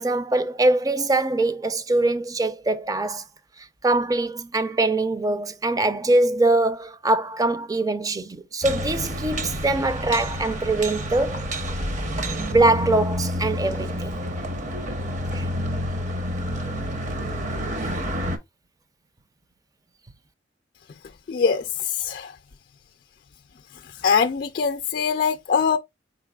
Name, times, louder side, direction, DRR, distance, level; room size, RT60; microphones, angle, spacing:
voice 1, 0.0-3.2 3.6-11.5 12.4-14.1 15.3-15.4, right 2 dB, 20° right, 0.4 m, -23 dB
sound 1, 8.6-18.4, equal, 45° right, 0.8 m, -29 dB
voice 2, 21.3-22.4 23.7-25.8, left 6 dB, 55° left, 0.4 m, -23 dB
4.6 x 3.9 x 2.3 m
head